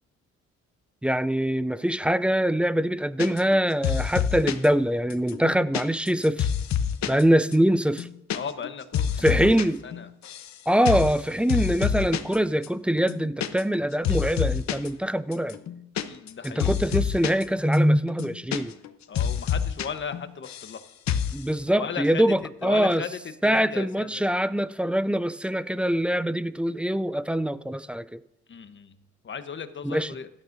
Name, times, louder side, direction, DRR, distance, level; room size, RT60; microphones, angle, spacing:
voice 1, 1.0-6.5 7.1-8.1 9.2-9.8 10.7-15.6 16.4-18.7 21.3-23.0 23.4-28.2 29.8-30.1, equal, 5° right, 0.3 m, -23 dB
sound 1, 3.2-3.6 3.8-4.7 5.1-7.2 7.5-7.6 7.9-8.4 8.6-9.7 9.9-10.5 10.9-11.2 11.5-12.4 12.6-12.7 13.0-13.8 14.0-14.9 15.3-17.4 17.7-17.8 18.1-18.9 19.2-19.9 20.1-20.8 21.1-21.4, left 8 dB, 65° left, 0.9 m, -27 dB
voice 2, 8.3-9.3 9.8-10.1 16.0-16.7 19.1-20.8 21.7-22.3 22.6-24.3 28.5-29.0 29.2-30.3, left 6 dB, 40° left, 1.0 m, -36 dB
17.0 x 12.0 x 2.6 m
cardioid pair, 90°, 30 cm